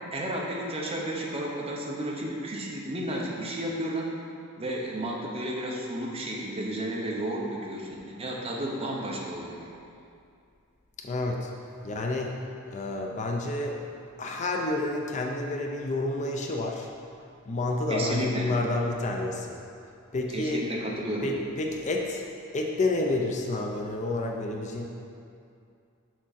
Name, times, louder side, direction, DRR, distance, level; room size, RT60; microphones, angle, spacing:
voice 1, 0.1-4.1 4.6-9.6 17.9-18.5 20.3-21.3, right 1 dB, 25° right, -2 dB, 0.9 m, -32 dB
voice 2, 11.0-11.5 11.8-12.3 12.7-13.8 14.2-16.9 17.5-19.6 20.1-20.6 21.2-22.2 22.5-24.8, left 2 dB, 35° left, 1 dB, 0.5 m, -29 dB
6.3 x 6.0 x 4.1 m, 2.5 s
head